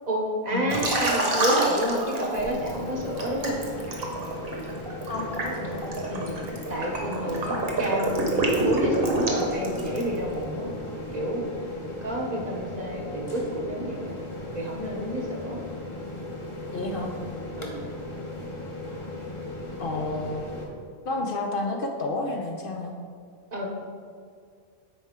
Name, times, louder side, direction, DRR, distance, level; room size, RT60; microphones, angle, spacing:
voice 1, 0.1-3.6 6.1-6.3 6.7-10.7 11.1-11.4 12.0-14.2 14.5-15.6 17.6-17.8 23.5-23.7, equal, 40° right, -1 dB, 0.9 m, -29 dB
Liquid, 0.7-2.7 3.2-10.2, right 2 dB, 60° right, 1.3 m, -27 dB
sound 1, 2.3-20.6, left 1 dB, 30° left, 0.9 m, -37 dB
voice 2, 5.1-5.8 16.7-17.1 19.8-20.5 21.1-22.9, left 2 dB, 60° left, 3 dB, 0.8 m, -30 dB
10.0 x 4.3 x 3.6 m, 2.2 s
omnidirectional pair, 1.1 m